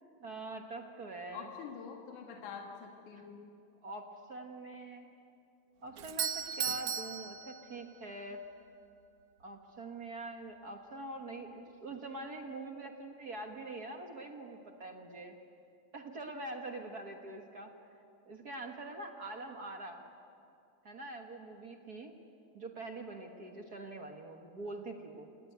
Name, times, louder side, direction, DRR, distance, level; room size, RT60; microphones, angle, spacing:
voice 1, 0.2-1.5 3.8-5.1 5.8-8.4 9.4-15.4 15.9-17.7 18.3-20.0 20.8-22.1 22.5-25.3, right 2 dB, 45° right, 3 dB, 1.4 m, -44 dB
voice 2, 1.3-3.4, left 6 dB, 80° left, 1 dB, 3.1 m, -46 dB
Doorbell, 6.0-8.1, right 8 dB, 70° right, 1.0 m, -37 dB
28.0 x 18.5 x 9.4 m, 2.5 s
omnidirectional pair, 3.5 m